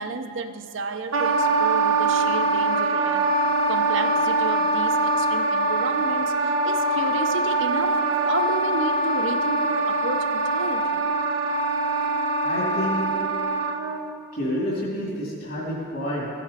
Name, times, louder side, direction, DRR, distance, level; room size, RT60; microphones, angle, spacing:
voice 1, 0.0-3.3 3.7-11.0, right 4 dB, 65° right, 8 dB, 0.6 m, -32 dB
Wind instrument woodwind instrument, 1.1-14.0, right 2 dB, 90° right, 0.8 m, -23 dB
voice 2, 12.4-13.1 14.3-16.3, equal, 60° left, -6 dB, 2.1 m, -28 dB
15.5 x 7.3 x 4.1 m, 2.6 s
head